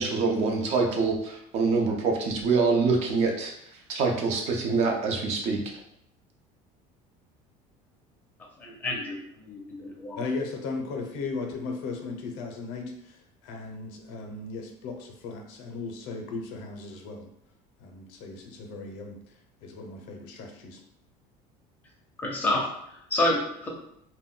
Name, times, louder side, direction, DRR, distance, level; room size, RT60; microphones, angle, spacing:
voice 1, 0.0-3.5 3.9-5.7, right 4 dB, 45° right, 2 dB, 0.5 m, -25 dB
voice 2, 8.6-10.2 22.2-23.7, left 2 dB, 10° left, -2 dB, 0.5 m, -29 dB
voice 3, 10.2-17.3 17.8-20.8, left 3 dB, 75° left, 3 dB, 0.6 m, -37 dB
2.2 x 2.1 x 3.6 m, 0.74 s
cardioid pair, 170°, 15 cm